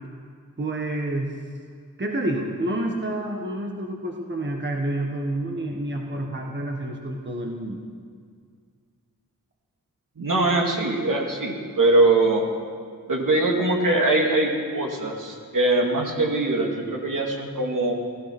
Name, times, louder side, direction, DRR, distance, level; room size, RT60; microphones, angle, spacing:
voice 1, 0.6-1.3 2.0-7.8, right 1 dB, 30° right, 1 dB, 1.5 m, -28 dB
voice 2, 10.2-12.5 13.1-17.9, right 2 dB, 65° right, 0 dB, 2.4 m, -22 dB
15.5 x 15.0 x 6.1 m, 2.1 s
wide cardioid pair, 85°, 34 cm